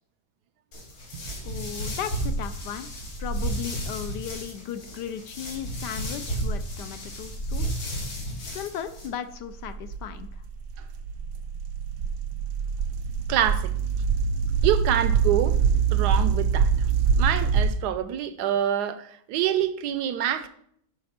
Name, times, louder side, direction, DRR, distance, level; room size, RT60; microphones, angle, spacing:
sound 1, 0.7-9.1, right 1 dB, 90° left, 3.3 m, -32 dB
voice 1, 1.4-2.9 3.2-7.7 8.5-10.4, left 8 dB, 70° left, 1.1 m, -36 dB
sound 2, 9.2-17.7, right 6 dB, 85° right, 1.5 m, -24 dB
voice 2, 13.3-13.7 14.6-15.6 15.9-16.7 17.2-20.5, right 10 dB, 70° right, 1.1 m, -26 dB
9.5 x 5.1 x 5.7 m
omnidirectional pair, 2.2 m